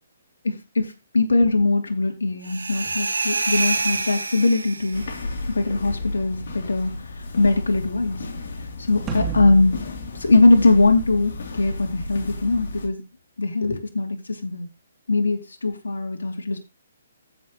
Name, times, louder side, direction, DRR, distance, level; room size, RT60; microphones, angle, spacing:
voice 1, 0.4-5.1 5.5-7.0 7.4-8.3 8.9-9.8 10.2-13.0 13.4-14.7 15.1-16.6, left 3 dB, 80° left, 3.1 m, -21 dB
sound 1, 2.4-5.2, right 3 dB, 90° right, 1.9 m, -26 dB
sound 2, 4.9-12.9, left 3 dB, 65° left, 3.3 m, -34 dB
sound 3, 9.1-11.5, right 4 dB, 20° right, 3.0 m, -32 dB
15.5 x 6.1 x 3.2 m
hypercardioid pair, 140°, 0 cm